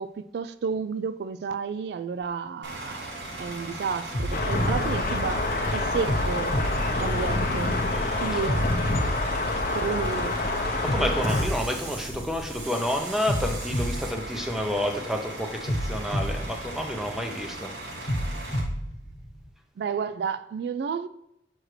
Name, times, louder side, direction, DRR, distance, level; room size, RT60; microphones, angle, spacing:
voice 1, 0.0-3.1 3.4-5.4 5.7-6.6 7.0-7.8 8.2-8.7 9.7-10.4 19.8-21.1, right 6 dB, 70° right, 0.3 m, -31 dB
Bus / Idling, 2.6-18.6, right 1 dB, 90° right, 1.4 m, -38 dB
sound 1, 4.1-5.5 6.1-7.8 8.5-10.3 10.9-12.7 13.3-15.1 15.7-17.4 18.1-19.5, equal, 70° left, 1.2 m, -31 dB
sound 2, 4.3-11.4, left 2 dB, 50° left, 0.7 m, -27 dB
voice 2, 7.9-8.5 10.8-17.7 18.0-18.1, left 1 dB, ahead, 0.7 m, -30 dB
6.3 x 6.1 x 3.2 m
head